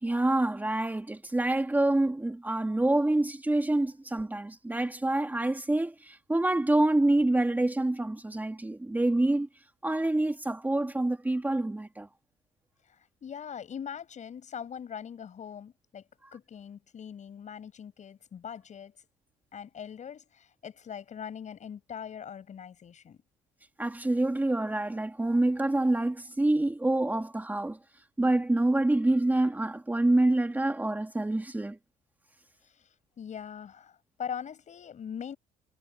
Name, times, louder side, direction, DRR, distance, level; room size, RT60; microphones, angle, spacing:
voice 1, 0.0-9.5 9.8-12.1 23.8-27.8 28.2-31.8, right 2 dB, 10° right, 2.5 m, -26 dB
voice 2, 13.2-16.0 16.3-18.9 19.5-23.2 33.2-33.9 34.2-35.4, left 8 dB, 45° left, 6.9 m, -41 dB
cardioid pair, 110°, 17 cm